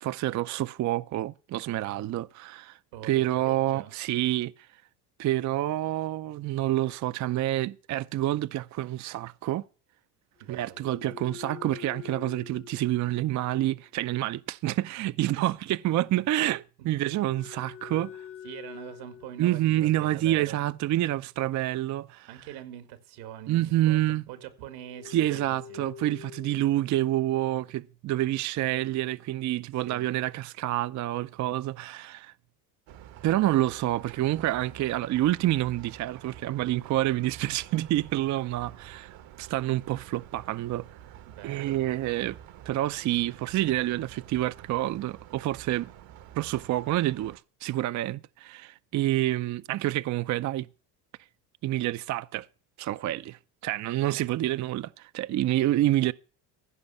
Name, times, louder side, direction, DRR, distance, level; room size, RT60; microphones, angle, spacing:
voice 1, 0.0-2.8 3.0-4.5 5.2-9.7 10.5-18.2 19.4-22.3 23.5-24.2 25.1-32.3 33.2-40.9 41.4-42.4 42.7-45.9 46.4-50.7 51.6-52.5 52.8-56.1, right 14 dB, 40° right, 0.5 m, -28 dB
voice 2, 2.9-3.9 10.4-11.1 15.4-15.5 18.4-20.7 22.3-25.9 29.9-30.2 41.3-41.9, right 12 dB, 80° right, 2.1 m, -44 dB
sound 1, 10.4-13.8 17.2-20.6 24.7-26.7, left 10 dB, 25° left, 0.8 m, -46 dB
sound 2, 32.9-47.4, right 10 dB, 60° right, 1.2 m, -49 dB
15.5 x 5.4 x 7.0 m
hypercardioid pair, 75°, 50 cm